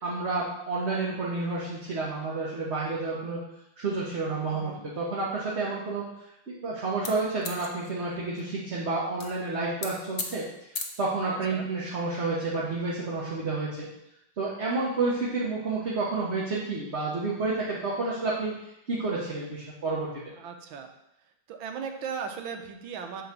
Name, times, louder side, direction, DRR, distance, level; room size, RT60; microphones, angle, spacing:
voice 1, 0.0-3.4 3.8-6.0 6.5-10.4 10.7-13.9 14.4-18.5 18.9-20.3, right 3 dB, 40° right, -6 dB, 1.3 m, -30 dB
voice 2, 4.5-4.8 11.3-11.7 20.3-20.9 21.5-23.2, right 6 dB, 80° right, 4 dB, 1.6 m, -37 dB
sound 1, 7.0-8.4 9.2-9.3 9.6-9.9 10.2-10.3 10.7-10.8, left 5 dB, 50° left, 0.7 m, -34 dB
9.4 x 3.3 x 6.8 m, 0.83 s
omnidirectional pair, 2.2 m